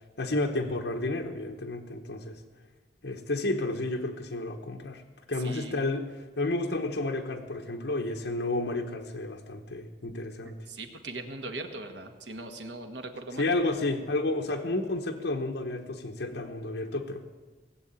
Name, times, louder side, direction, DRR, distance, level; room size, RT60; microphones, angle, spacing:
voice 1, 0.2-2.4 3.0-5.0 5.3-10.6 13.4-17.3, left 2 dB, 75° left, 2 dB, 1.0 m, -31 dB
voice 2, 5.4-5.9 10.7-13.6, right 2 dB, 85° right, 6 dB, 1.6 m, -40 dB
18.5 x 7.7 x 8.8 m, 1.4 s
head